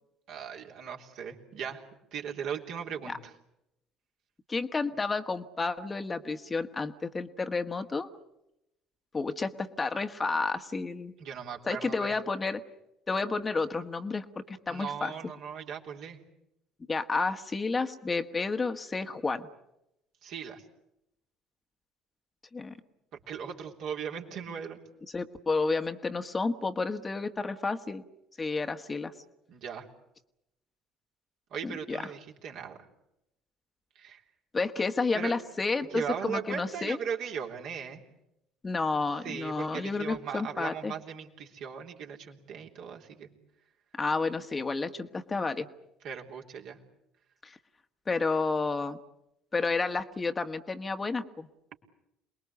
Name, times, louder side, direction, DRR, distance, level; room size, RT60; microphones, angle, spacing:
voice 1, 0.3-1.8 2.1-3.1 11.2-12.1 14.7-16.2 20.2-20.6 23.3-24.8 29.5-29.8 31.5-32.8 33.9-34.2 35.1-35.3 35.9-38.0 39.2-43.3 46.0-46.8, right 7 dB, 55° right, 1 dB, 3.4 m, -38 dB
voice 2, 4.5-8.1 9.1-11.1 11.7-12.6 13.1-15.1 16.9-19.5 22.5-22.7 25.1-28.0 28.4-29.1 31.6-32.1 34.5-37.0 38.6-40.9 43.9-45.7 47.4-47.6 48.1-49.0 49.5-51.5, left 3 dB, 25° left, 8 dB, 1.5 m, -31 dB
28.0 x 21.5 x 8.3 m, 0.85 s
figure-of-eight pair, 55°, 0 cm